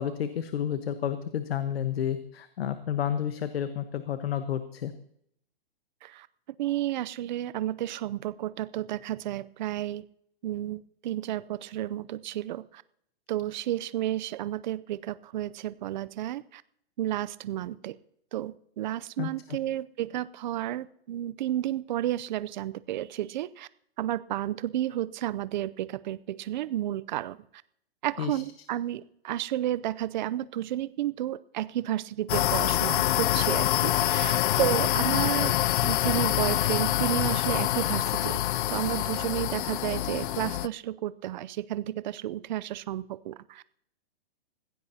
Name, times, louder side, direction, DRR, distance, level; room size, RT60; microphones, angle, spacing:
voice 1, 0.0-4.9 19.2-19.3 28.2-28.4, left 9 dB, 75° left, 10 dB, 1.2 m, -30 dB
voice 2, 6.6-10.0 10.4-12.8 13.3-16.6 17.0-18.0 18.3-23.7 24.0-27.4 28.0-35.6 35.8-38.4 38.7-43.6, right 13 dB, 50° right, 17 dB, 0.6 m, -32 dB
sound 1, 32.3-40.7, left 13 dB, 55° left, 0.4 m, -26 dB
20.5 x 16.0 x 2.8 m, 0.72 s
hypercardioid pair, 150°, 30 cm